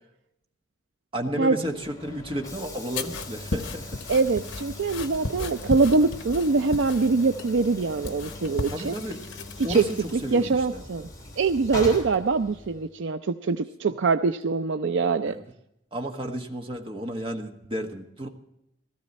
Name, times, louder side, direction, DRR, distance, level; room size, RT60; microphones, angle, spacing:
voice 1, 1.1-4.0 8.7-9.2 9.6-10.8 11.7-12.0 15.2-15.4 15.9-18.3, equal, 30° right, 3 dB, 1.5 m, -33 dB
Train / Sliding door, 1.5-12.9, left 2 dB, 20° left, 3.2 m, -42 dB
sound 1, 2.9-10.3, left 3 dB, 80° left, 1.1 m, -36 dB
voice 2, 4.1-8.9 9.7-11.1 11.4-15.4, right 4 dB, 70° right, 9 dB, 0.5 m, -23 dB
16.5 x 14.0 x 4.2 m, 0.81 s
head